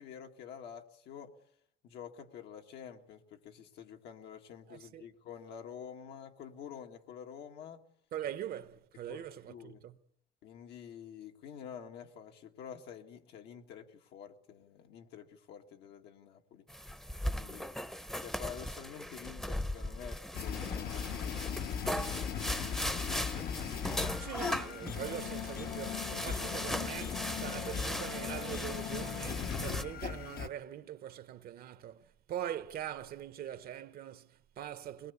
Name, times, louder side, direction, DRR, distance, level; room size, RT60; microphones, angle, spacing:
voice 1, 0.0-1.3 1.8-7.8 9.1-9.8 10.4-16.7 17.3-17.7 18.2-23.5 24.2-24.4, left 8 dB, 80° left, 1.9 m, -49 dB
voice 2, 4.7-5.0 8.1-10.0 24.2-35.1, right 11 dB, 65° right, 1.1 m, -42 dB
sound 1, 16.7-29.8, equal, 5° left, 0.8 m, -39 dB
sound 2, 20.3-30.5, left 8 dB, 65° left, 1.1 m, -38 dB
22.5 x 20.0 x 8.2 m
cardioid pair, 110°, 17 cm